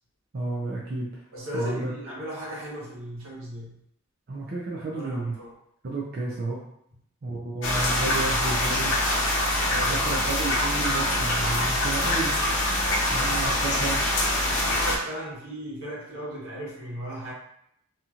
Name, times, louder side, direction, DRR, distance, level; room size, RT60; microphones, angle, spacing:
voice 1, 0.3-1.2 1.5-1.9 4.3-5.4 5.8-6.6 7.2-8.9 9.8-12.4 13.1-14.0, right 2 dB, 50° right, -4 dB, 0.5 m, -31 dB
voice 2, 1.3-3.8 4.9-5.5 9.7-10.0 14.4-17.3, equal, 85° right, -6 dB, 1.3 m, -36 dB
sound 1, 7.6-15.0, left 1 dB, 65° left, 0.7 m, -24 dB
2.8 x 2.8 x 2.4 m, 0.75 s
head